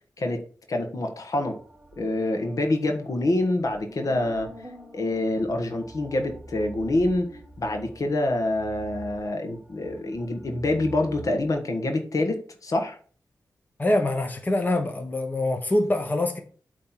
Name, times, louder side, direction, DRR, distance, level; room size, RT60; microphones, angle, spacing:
voice 1, 0.7-1.6 2.0-4.5 4.9-7.3 7.6-13.0, left 2 dB, 55° left, 1.3 m, -26 dB
sound 1, 1.4-11.5, right 1 dB, 10° right, 1.7 m, -45 dB
voice 2, 13.8-16.4, left 1 dB, 25° left, 1.2 m, -24 dB
8.5 x 3.2 x 5.8 m
cardioid pair, 80°, 7 cm